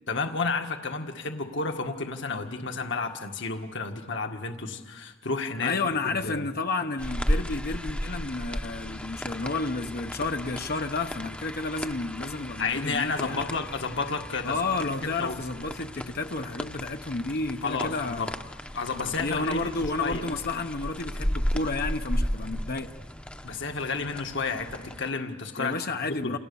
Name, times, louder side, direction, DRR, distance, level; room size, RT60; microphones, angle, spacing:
voice 1, 0.1-5.8 6.0-6.4 12.6-14.6 14.8-15.4 17.6-18.3 18.7-20.3 23.4-25.7 26.0-26.4, left 4 dB, 65° left, 1.8 m, -31 dB
voice 2, 5.6-13.4 14.4-18.3 19.0-22.9 25.6-26.4, left 3 dB, 50° left, 0.9 m, -31 dB
sound 1, 7.0-25.1, equal, 5° left, 0.9 m, -34 dB
29.0 x 29.0 x 7.1 m
head